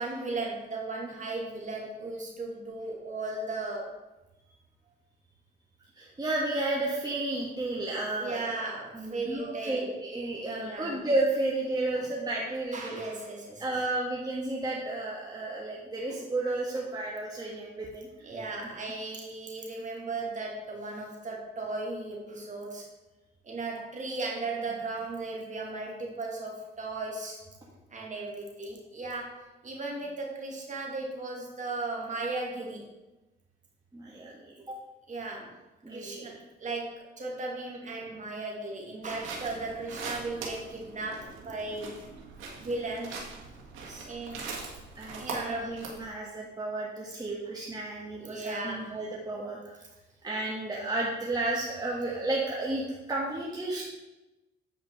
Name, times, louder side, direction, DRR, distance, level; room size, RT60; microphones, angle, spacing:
voice 1, 0.0-4.0 8.2-9.9 10.5-11.0 12.7-13.6 18.2-22.9 23.4-27.4 27.9-32.8 35.1-35.5 35.9-41.9 42.6-43.2 44.1-44.5 45.2-45.7 48.1-49.0, right 3 dB, 40° right, -1 dB, 2.3 m, -36 dB
voice 2, 5.9-8.6 8.9-13.0 13.6-18.3 33.9-34.8 35.8-36.3 43.9-44.0 45.0-49.6 50.2-53.8, right 2 dB, 20° right, -4 dB, 1.6 m, -32 dB
sound 1, 39.0-46.0, right 4 dB, 85° right, 1.7 m, -41 dB
8.2 x 5.1 x 4.7 m, 1.0 s
cardioid pair, 90°, 20 cm